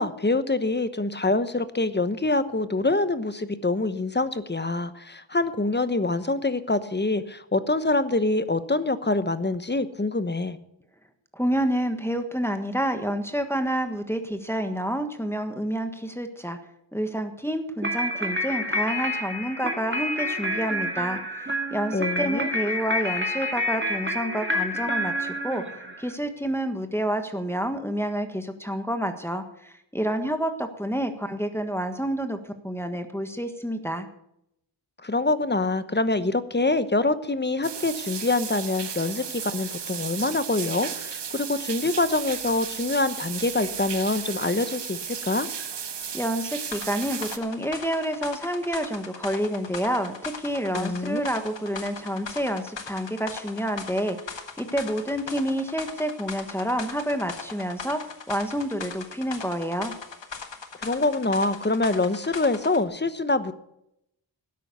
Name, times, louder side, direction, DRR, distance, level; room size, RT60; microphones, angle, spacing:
voice 1, 0.0-10.6 21.9-22.5 35.0-45.5 50.7-51.2 60.8-63.5, left 2 dB, 25° left, 12 dB, 1.0 m, -25 dB
voice 2, 11.3-16.6 16.9-32.4 32.6-34.1 46.1-58.0 58.3-59.9, equal, 5° left, 6 dB, 1.4 m, -29 dB
sound 1, 17.8-26.1, equal, 25° right, 2.0 m, -28 dB
sound 2, 37.6-47.4, right 7 dB, 65° right, 1.0 m, -34 dB
sound 3, 46.7-62.8, left 5 dB, 70° left, 1.6 m, -39 dB
13.0 x 9.8 x 6.9 m, 0.80 s
wide cardioid pair, 75°, 46 cm